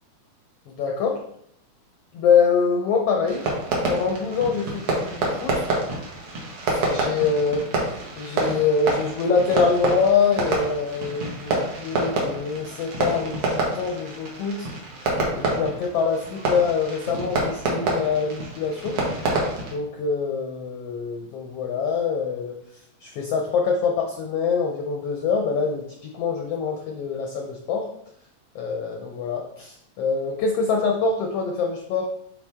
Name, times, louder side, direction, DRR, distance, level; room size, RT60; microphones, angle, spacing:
voice 1, 0.7-1.1 2.1-3.4 3.9-5.6 6.7-14.7 15.0-19.0 19.7-27.9 28.5-32.1, left 5 dB, 75° left, 1 dB, 1.4 m, -25 dB
Fireworks, 3.2-19.7, right 2 dB, 55° right, 2.1 m, -27 dB
9.0 x 4.1 x 3.5 m, 0.72 s
omnidirectional pair, 3.6 m